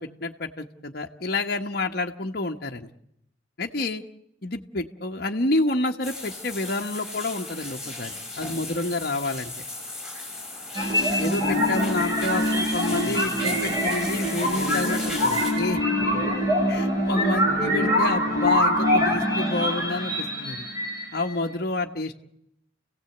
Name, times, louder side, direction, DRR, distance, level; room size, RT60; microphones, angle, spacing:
voice 1, 0.0-2.9 3.6-4.0 4.4-9.5 11.2-15.8 16.7-20.7 21.1-22.2, left 2 dB, 50° left, 2 dB, 1.2 m, -29 dB
sound 1, 6.0-15.5, left 2 dB, ahead, 5.8 m, -36 dB
sound 2, 10.7-21.3, equal, 20° right, 4.8 m, -24 dB
29.0 x 16.5 x 7.9 m, 0.80 s
head